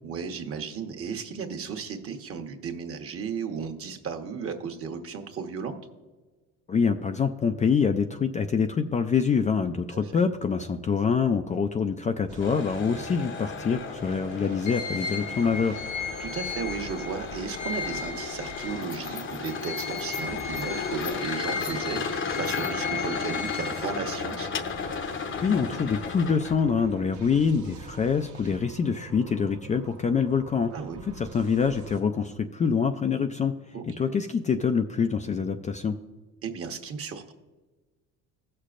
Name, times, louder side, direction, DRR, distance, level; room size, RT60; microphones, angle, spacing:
voice 1, 0.0-5.8 9.9-10.1 16.2-24.5 30.7-31.0 33.7-34.2 36.4-37.3, right 6 dB, 45° right, 5 dB, 1.2 m, -35 dB
voice 2, 6.7-15.8 25.4-30.7 31.2-33.5 34.0-36.0, left 6 dB, 25° left, 7 dB, 0.4 m, -25 dB
sound 1, 12.3-32.0, right 4 dB, 65° right, 1.3 m, -46 dB
sound 2, 12.4-26.7, left 5 dB, 40° left, 0.8 m, -34 dB
sound 3, 14.7-19.0 19.4-24.3, left 5 dB, 90° left, 2.8 m, -36 dB
16.5 x 6.6 x 2.5 m, 1.2 s
supercardioid pair, 90°, 32 cm